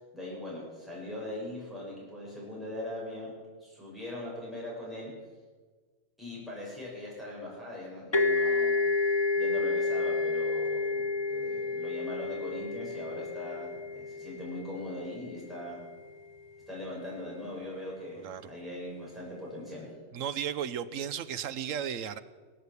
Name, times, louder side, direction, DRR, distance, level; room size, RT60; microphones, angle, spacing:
voice 1, 0.1-3.3 3.6-5.1 6.2-8.8 9.3-15.8 16.7-19.9, left 1 dB, ahead, -6 dB, 6.4 m, -40 dB
sound 1, 8.1-15.7, left 3 dB, 30° left, 0.6 m, -30 dB
voice 2, 18.2-18.5 20.1-22.2, right 9 dB, 80° right, 14 dB, 1.1 m, -34 dB
19.5 x 8.6 x 8.3 m, 1.4 s
omnidirectional pair, 1.4 m